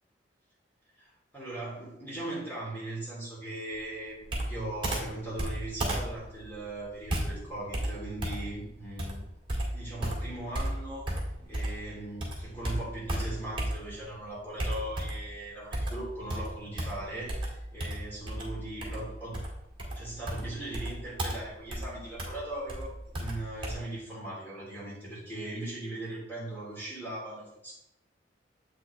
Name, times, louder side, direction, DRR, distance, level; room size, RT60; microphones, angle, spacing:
voice 1, 1.0-9.2 9.7-11.1 11.5-19.4 19.9-27.7, right 1 dB, 10° left, -8 dB, 2.9 m, -39 dB
Computer keyboard, 4.3-11.9 12.2-14.1 14.6-15.3 15.7-23.7, right 1 dB, 30° right, 1.7 m, -34 dB
7.8 x 5.9 x 3.2 m, 0.84 s
head